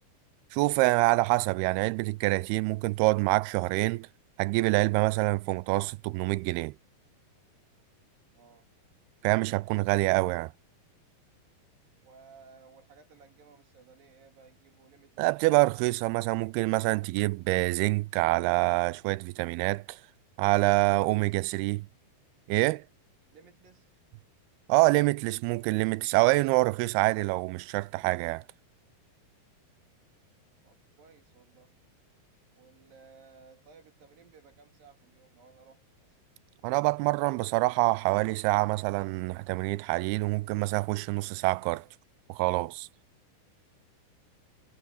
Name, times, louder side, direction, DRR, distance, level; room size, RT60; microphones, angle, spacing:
voice 1, 0.5-4.1 4.4-6.7 9.2-10.5 15.2-20.0 20.4-21.8 22.5-22.8 24.7-28.4 36.6-41.9 42.3-42.9, right 22 dB, 85° right, 2.5 m, -26 dB
voice 2, 8.3-8.7 9.5-9.6 12.0-15.5 23.3-23.9 29.9-30.2 30.6-31.8 32.6-36.2 43.4-43.7, right 5 dB, 65° right, 4.4 m, -57 dB
omnidirectional pair, 4.4 m